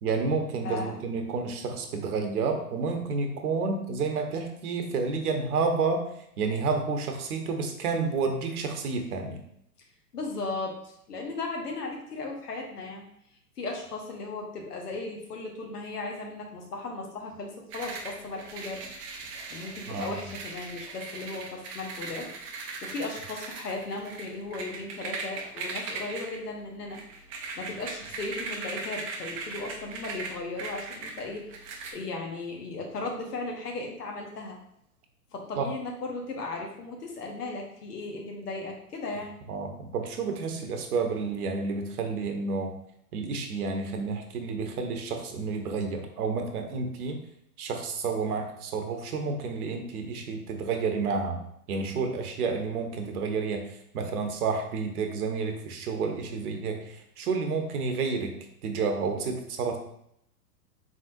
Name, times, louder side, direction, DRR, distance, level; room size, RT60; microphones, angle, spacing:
voice 1, 0.0-6.1 6.4-9.4 19.9-20.3 35.6-35.7 39.5-42.7 43.1-47.2 47.6-51.4 51.7-53.7 53.9-58.4 58.6-59.8, right 4 dB, 70° right, 4 dB, 0.9 m, -30 dB
voice 2, 0.6-1.0 10.1-13.0 13.6-18.8 19.5-27.0 27.6-31.4 31.9-34.6 35.3-39.3, left 3 dB, 80° left, 1 dB, 1.2 m, -36 dB
sound 1, 17.7-31.9, right 4 dB, 25° right, 0.4 m, -39 dB
4.0 x 3.8 x 2.6 m, 0.75 s
hypercardioid pair, 115°, 47 cm